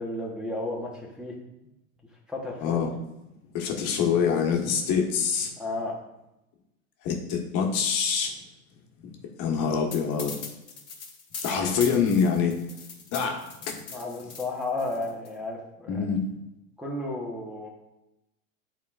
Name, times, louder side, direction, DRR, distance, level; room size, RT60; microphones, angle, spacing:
voice 1, 0.0-1.4 2.3-2.9 5.6-6.0 11.5-11.7 13.9-16.0 16.8-17.7, left 2 dB, ahead, -5 dB, 1.1 m, -33 dB
voice 2, 2.6-2.9 3.5-5.5 7.0-8.3 9.4-10.4 11.4-12.5 13.1-13.8 15.9-16.2, left 6 dB, 45° left, 1 dB, 1.4 m, -25 dB
sound 1, 9.9-15.3, left 5 dB, 25° left, 2.0 m, -40 dB
8.8 x 4.3 x 2.5 m, 0.92 s
hypercardioid pair, 105°, 42 cm